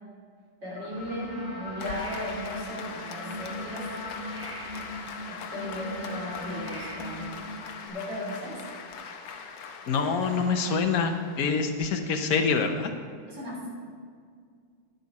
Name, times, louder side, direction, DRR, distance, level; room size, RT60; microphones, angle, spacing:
voice 1, 0.6-3.9 5.3-7.3 7.9-8.6 13.3-13.7, equal, 65° right, -5 dB, 4.1 m, -36 dB
sound 1, 0.8-7.9, left 1 dB, 10° right, 2.0 m, -39 dB
Applause, 1.8-11.9, left 5 dB, 80° left, 1.6 m, -41 dB
voice 2, 9.9-12.9, left 5 dB, 55° left, 5 dB, 1.2 m, -26 dB
10.5 x 10.5 x 4.2 m, 2.1 s
omnidirectional pair, 2.2 m